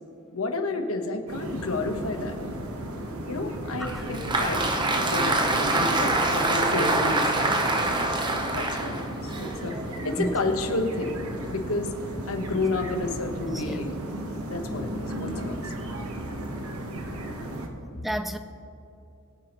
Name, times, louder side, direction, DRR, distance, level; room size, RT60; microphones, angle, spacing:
voice 1, 0.3-2.4 3.3-8.2 8.5-9.8 10.0-11.2 11.5-11.9 12.2-14.0 14.5-15.7, left 2 dB, 75° left, 5 dB, 1.2 m, -31 dB
sound 1, 1.3-17.7, right 1 dB, 85° right, 1.3 m, -35 dB
Applause, 3.9-10.2, right 2 dB, 20° right, 0.9 m, -25 dB
voice 2, 13.5-13.8 18.0-18.4, right 1 dB, ahead, 8 dB, 0.3 m, -31 dB
22.0 x 8.6 x 3.1 m, 2.8 s
head